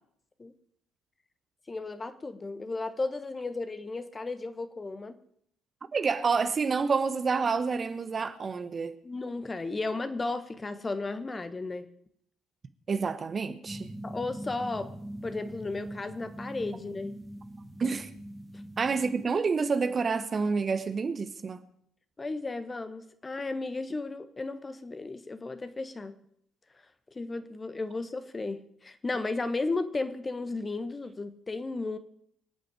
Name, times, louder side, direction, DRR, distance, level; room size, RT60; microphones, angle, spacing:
voice 1, 1.7-5.2 9.0-11.9 14.0-14.9 15.2-17.2 22.2-26.1 27.1-32.0, left 3 dB, 25° left, 1.3 m, -34 dB
voice 2, 5.9-9.0 12.9-13.9 17.8-18.1 18.8-21.6, right 5 dB, 35° right, 1.1 m, -28 dB
sound 1, 13.7-19.3, right 1 dB, 5° right, 2.0 m, -42 dB
25.0 x 9.1 x 4.9 m
figure-of-eight pair, 50°, 0 cm